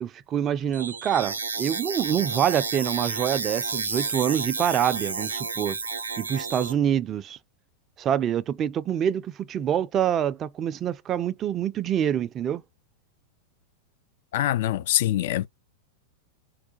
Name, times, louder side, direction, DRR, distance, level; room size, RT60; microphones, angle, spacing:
voice 1, 0.0-5.8 6.2-7.4 8.0-12.6, right 9 dB, 30° right, 0.4 m, -26 dB
sound 1, 0.7-6.7, right 4 dB, 80° right, 0.6 m, -31 dB
voice 2, 14.3-15.5, left 13 dB, 55° left, 0.4 m, -24 dB
4.7 x 2.3 x 4.0 m
figure-of-eight pair, 90°, 0 cm